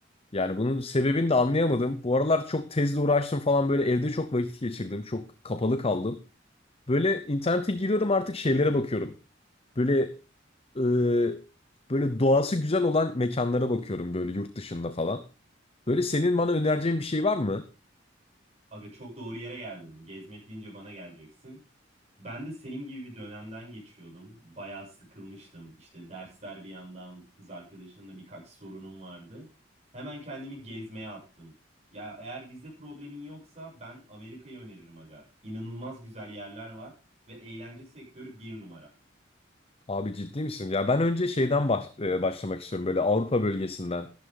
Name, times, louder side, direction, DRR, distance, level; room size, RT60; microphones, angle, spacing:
voice 1, 0.3-6.2 6.9-9.1 9.8-10.1 10.7-11.4 11.9-15.2 15.9-17.6 39.9-44.1, left 2 dB, 30° left, 10 dB, 0.8 m, -26 dB
voice 2, 18.7-21.6 22.2-29.5 29.9-31.5 31.9-36.9 37.3-38.9, right 1 dB, 35° right, -3 dB, 7.7 m, -42 dB
13.0 x 12.0 x 3.9 m, 0.31 s
head